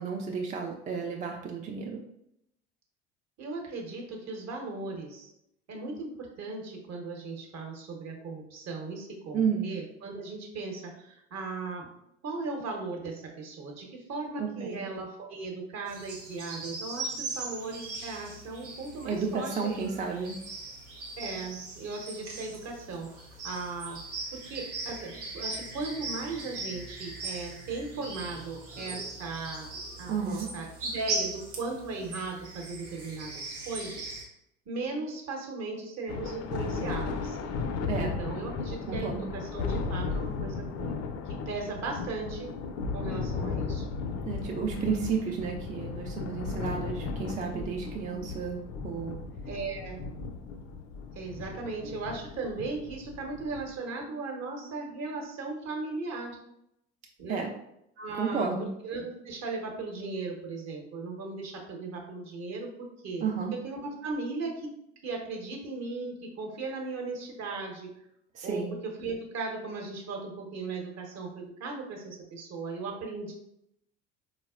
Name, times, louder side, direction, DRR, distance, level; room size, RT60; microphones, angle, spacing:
voice 1, 0.0-2.0 9.3-9.7 14.4-14.8 19.0-20.4 30.1-30.5 37.8-38.1 38.9-39.3 44.3-49.2 57.3-57.5 58.1-58.7 63.2-63.5 68.3-68.7, right 5 dB, 25° right, 1 dB, 0.3 m, -32 dB
voice 2, 3.4-5.3 5.7-11.9 12.2-19.9 21.2-24.0 24.4-29.7 30.0-34.1 34.7-37.4 37.9-41.0 41.5-42.5 42.9-43.8 49.5-50.0 51.1-56.3 57.2-57.5 58.0-58.5 58.8-62.7 63.0-63.2 63.6-64.7 65.0-67.9 68.4-73.3, right 3 dB, 50° right, 1 dB, 0.9 m, -37 dB
sound 1, 15.9-34.3, right 3 dB, 90° right, 0.7 m, -39 dB
Thunder, 36.1-53.8, left 4 dB, 50° left, 0.4 m, -35 dB
4.1 x 2.0 x 2.3 m, 0.78 s
hypercardioid pair, 65°, 34 cm